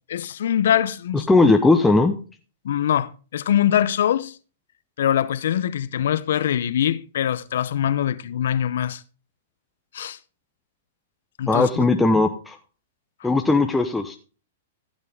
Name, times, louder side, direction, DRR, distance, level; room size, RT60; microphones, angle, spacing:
voice 1, 0.1-1.3 2.6-4.4 5.0-9.0 9.9-10.2 11.4-11.9, left 10 dB, 70° left, 0.7 m, -23 dB
voice 2, 1.1-2.1 11.5-12.6 13.2-14.2, left 3 dB, 5° left, 0.8 m, -18 dB
15.0 x 7.5 x 3.5 m
hypercardioid pair, 120°, 0 cm